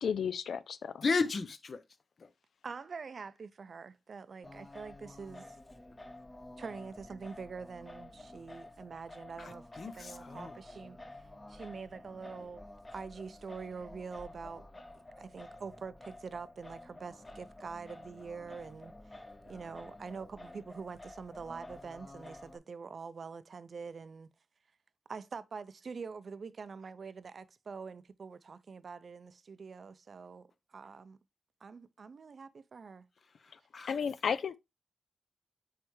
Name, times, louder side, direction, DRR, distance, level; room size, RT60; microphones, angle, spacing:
voice 1, 0.0-1.0 33.9-34.6, left 7 dB, 90° left, 0.4 m, -33 dB
voice 2, 1.0-1.8 2.2-2.3 9.4-10.5 33.4-33.9, left 4 dB, 55° left, 0.8 m, -34 dB
voice 3, 2.6-5.6 6.6-9.7 9.9-11.2 11.5-12.6 12.9-14.7 15.2-24.3 25.1-31.2 31.6-33.1, right 5 dB, 60° right, 0.5 m, -45 dB
Singing, 4.4-22.6, left 1 dB, 25° left, 0.9 m, -51 dB
9.3 x 3.3 x 3.1 m
wide cardioid pair, 85°, 0 cm